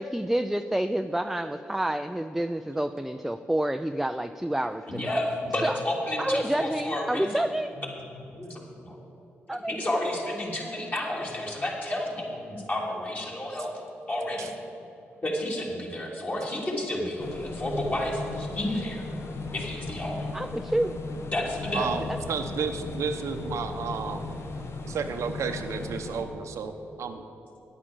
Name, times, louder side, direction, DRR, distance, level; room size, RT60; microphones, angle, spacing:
voice 1, 0.0-5.2 5.6-5.8 6.2-7.7 9.5-9.7 20.3-21.0 22.1-22.2, right 1 dB, 5° right, 9 dB, 0.4 m, -28 dB
voice 2, 4.9-7.3 7.8-7.9 8.1-9.0 9.7-13.7 14.1-14.5 15.2-19.0 19.5-20.3 21.3-21.9, left 1 dB, 35° left, -2 dB, 3.1 m, -31 dB
sound 1, 17.2-26.2, left 3 dB, 60° left, 1.2 m, -37 dB
voice 3, 21.7-24.3 24.9-27.2, right 5 dB, 75° right, 6 dB, 0.8 m, -32 dB
9.9 x 8.4 x 7.2 m, 2.9 s
supercardioid pair, 50°, 5 cm